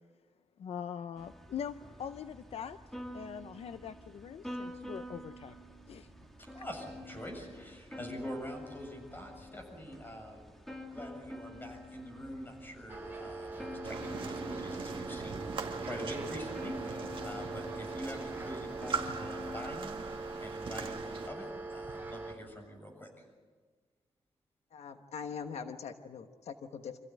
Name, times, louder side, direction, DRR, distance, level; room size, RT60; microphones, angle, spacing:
voice 1, 0.6-2.8 3.1-5.6 5.9-6.1, left 8 dB, 70° left, 11 dB, 0.6 m, -42 dB
sound 1, 1.2-19.7, left 1 dB, 5° left, 2.3 m, -48 dB
voice 2, 6.4-10.4 10.9-20.0 20.4-23.3, equal, 20° left, 2 dB, 7.3 m, -45 dB
sound 2, 12.9-22.3, right 3 dB, 20° right, 3.8 m, -42 dB
sound 3, 13.8-21.3, right 4 dB, 50° right, 1.9 m, -41 dB
voice 3, 24.7-27.0, left 6 dB, 85° left, 6 dB, 1.2 m, -42 dB
26.5 x 15.5 x 10.0 m, 1.4 s
wide cardioid pair, 145°, 11 cm